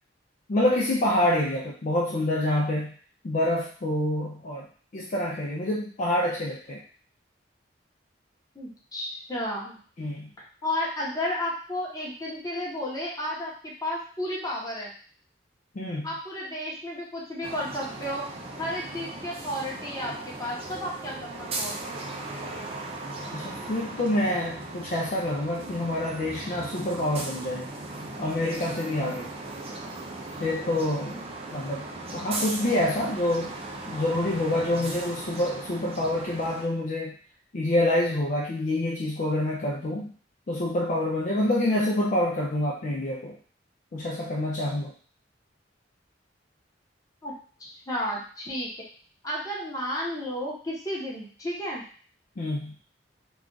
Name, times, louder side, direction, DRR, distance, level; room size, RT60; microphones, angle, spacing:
voice 1, 0.5-2.9 3.2-4.7 4.9-6.8 10.0-10.3 15.8-16.1 23.3-27.7 28.2-29.3 30.4-31.2 31.5-31.9 32.1-33.5 33.9-37.1 37.5-40.1 40.5-43.4 43.9-44.9 52.4-52.8, left 1 dB, 45° left, -3 dB, 0.4 m, -27 dB
voice 2, 8.5-9.8 10.6-14.9 16.0-18.3 18.6-21.9 47.2-48.7 49.2-51.8, left 1 dB, 20° left, -4 dB, 0.8 m, -32 dB
sound 1, 17.4-36.6, right 2 dB, 35° right, 0.5 m, -38 dB
2.4 x 2.3 x 3.8 m, 0.43 s
head